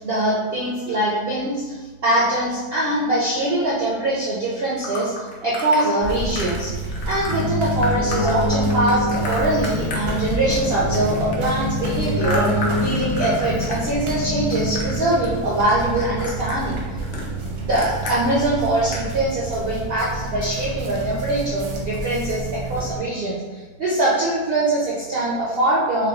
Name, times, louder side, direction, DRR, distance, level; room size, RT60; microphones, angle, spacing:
voice 1, 0.0-6.7 7.0-16.8 17.6-26.1, right 1 dB, 70° right, -6 dB, 0.5 m, -23 dB
sound 1, 4.8-5.9 6.3-6.6 6.9-7.3 7.8-10.6 10.9-13.8 14.1-15.0 15.2-15.7 16.0-18.2 18.6-18.7 18.9-19.1, left 2 dB, 55° left, 0.7 m, -32 dB
sound 2, 6.0-23.0, right 2 dB, 85° right, 1.3 m, -30 dB
Keyboard (musical), 7.3-15.1, left 1 dB, 85° left, 1.2 m, -26 dB
3.4 x 2.1 x 3.3 m, 1.3 s
omnidirectional pair, 1.6 m